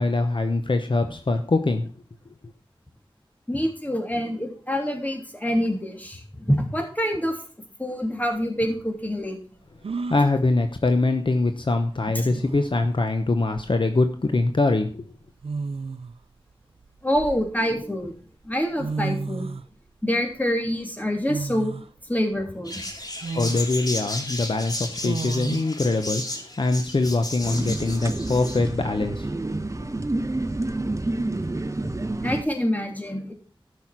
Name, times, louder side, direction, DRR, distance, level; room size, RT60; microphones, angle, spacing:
voice 1, 0.0-1.9 10.1-15.1 23.3-29.3, left 2 dB, 60° left, 7 dB, 1.0 m, -23 dB
voice 2, 3.5-7.4 7.8-9.4 12.1-12.3 17.0-18.1 18.4-19.5 20.0-21.7 22.0-22.8 32.2-33.3, equal, 15° left, 2 dB, 3.0 m, -26 dB
sound 1, 8.2-8.3 9.8-10.3 11.8-11.9 12.3-12.8 14.1-14.3 15.4-16.2 16.8-17.9 18.5-18.6 18.8-19.7 21.3-21.9 22.4-22.5 23.2-23.7 25.0-25.7, right 4 dB, 85° right, 0.5 m, -32 dB
sound 2, 22.6-28.6, left 1 dB, 45° left, 2.4 m, -34 dB
sound 3, 27.4-32.4, right 2 dB, 35° right, 0.9 m, -29 dB
12.5 x 6.4 x 6.0 m, 0.41 s
wide cardioid pair, 60°, 10 cm